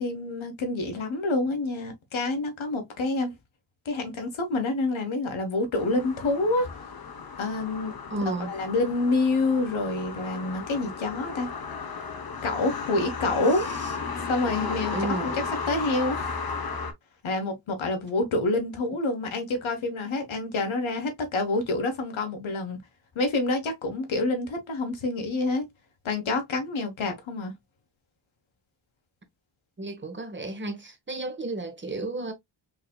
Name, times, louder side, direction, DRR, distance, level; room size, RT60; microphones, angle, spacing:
voice 1, 0.0-3.3 3.8-6.7 7.4-11.5 12.4-13.7 14.3-16.4 17.2-22.8 23.1-25.7 26.0-27.5, left 2 dB, 80° left, 1.2 m, -27 dB
sound 1, 5.8-16.9, left 5 dB, 50° left, 0.8 m, -34 dB
voice 2, 8.1-8.5 14.9-15.4 29.8-32.3, right 2 dB, 25° right, 1.1 m, -32 dB
4.7 x 2.7 x 2.2 m
wide cardioid pair, 100°, 47 cm